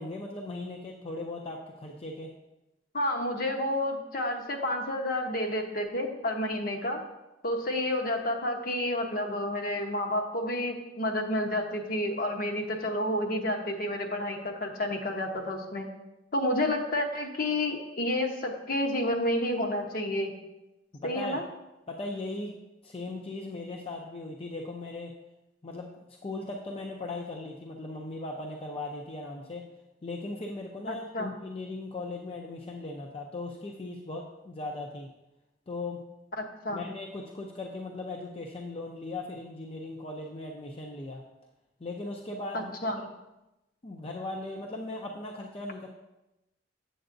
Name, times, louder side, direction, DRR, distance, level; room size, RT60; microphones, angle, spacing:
voice 1, 0.0-2.3 21.0-21.4 21.9-22.5 22.8-25.1 25.6-29.7 30.0-35.1 35.7-36.0 36.7-41.2 41.8-43.1 43.8-45.9, left 2 dB, 35° left, 0 dB, 0.5 m, -38 dB
voice 2, 2.9-7.0 7.4-15.9 16.3-20.3 21.0-21.4 30.9-31.3 36.4-36.8 42.5-43.0, left 1 dB, 55° left, 3 dB, 0.9 m, -30 dB
7.8 x 7.8 x 2.6 m, 0.96 s
head